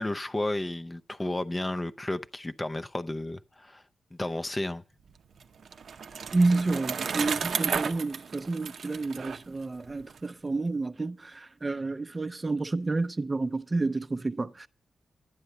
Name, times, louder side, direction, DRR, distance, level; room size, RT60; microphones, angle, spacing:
voice 1, 0.0-3.8 4.1-4.8, left 1 dB, 15° left, 0.6 m, -32 dB
Bicycle, 5.1-10.2, right 6 dB, 65° right, 0.7 m, -33 dB
voice 2, 6.3-14.7, right 3 dB, 25° right, 0.6 m, -29 dB
11.5 x 9.4 x 6.6 m
wide cardioid pair, 115°, 0 cm